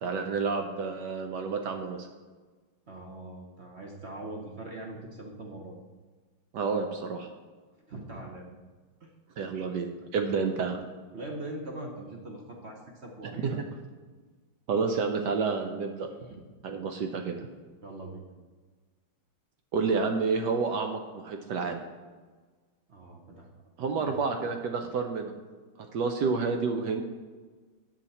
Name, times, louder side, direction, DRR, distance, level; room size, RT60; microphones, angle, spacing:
voice 1, 0.0-2.1 6.5-7.3 9.4-10.8 13.4-13.6 14.7-16.1 16.6-17.4 19.7-21.8 23.8-25.3 25.9-27.0, right 5 dB, 70° right, 4 dB, 1.1 m, -29 dB
voice 2, 2.9-5.8 7.9-8.5 9.0-9.1 10.3-10.5 11.1-13.6 16.2-16.4 17.8-18.3 22.9-23.5 23.8-24.4, right 2 dB, 45° right, 0 dB, 0.9 m, -42 dB
9.0 x 7.3 x 4.2 m, 1.4 s
omnidirectional pair, 2.3 m